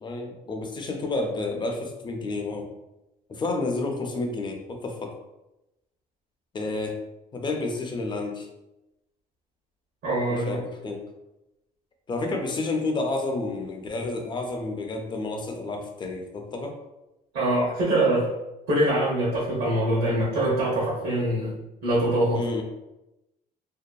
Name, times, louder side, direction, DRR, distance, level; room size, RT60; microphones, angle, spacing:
voice 1, 0.0-2.7 3.3-5.1 6.5-7.0 7.3-8.5 10.3-11.0 12.1-16.8 22.3-22.6, left 3 dB, 25° left, 3 dB, 0.4 m, -30 dB
voice 2, 10.0-10.6 17.3-18.3 18.7-21.5 21.8-22.4, right 1 dB, 70° right, -6 dB, 0.9 m, -23 dB
2.7 x 2.2 x 2.2 m, 0.94 s
cardioid pair, 110°, 17 cm